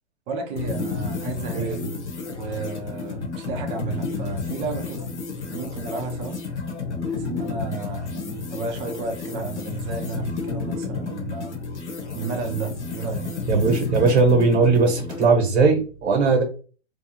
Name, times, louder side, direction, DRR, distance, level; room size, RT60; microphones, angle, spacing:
voice 1, 0.3-1.8 2.2-5.1 5.5-6.4 7.1-11.5 12.1-13.3, right 4 dB, 15° right, 3 dB, 0.4 m, -32 dB
sound 1, 0.6-15.3, left 4 dB, 85° left, 0.9 m, -31 dB
voice 2, 1.5-1.9 13.5-16.4, right 4 dB, 70° right, 2 dB, 1.0 m, -19 dB
2.6 x 2.4 x 2.6 m, 0.37 s
hypercardioid pair, 125°, 34 cm